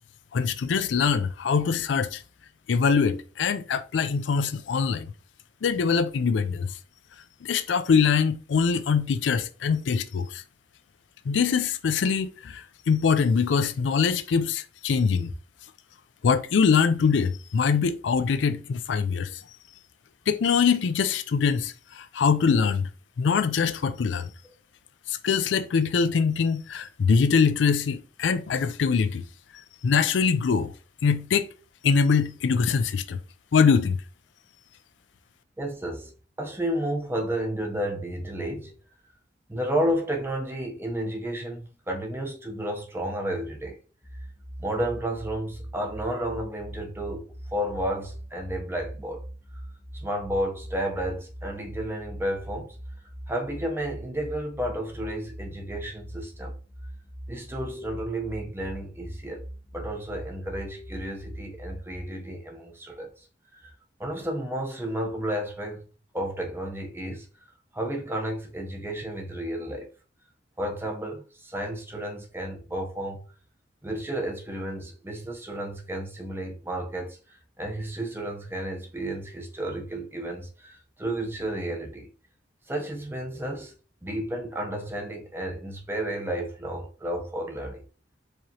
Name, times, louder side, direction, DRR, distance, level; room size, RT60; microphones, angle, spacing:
voice 1, 0.3-2.2 2.7-5.1 5.6-6.7 7.4-10.4 11.3-15.3 16.2-19.4 20.3-22.9 23.2-24.3 25.1-29.2 29.8-30.7 31.0-31.5 31.8-33.2 33.5-34.0, left 5 dB, 75° left, 0.4 m, -23 dB
voice 2, 35.6-36.1 36.4-38.7 39.5-43.8 44.2-44.3 44.6-49.2 49.5-49.6 49.9-52.8 53.3-56.5 57.3-59.5 59.7-63.3 63.5-63.7 64.0-65.8 66.1-67.3 67.7-69.9 70.6-73.3 73.8-82.1 82.7-83.7 84.0-87.8, right 1 dB, 10° right, 0.8 m, -32 dB
sound 1, 44.0-62.1, right 1 dB, 35° left, 1.0 m, -41 dB
4.8 x 2.9 x 2.8 m
head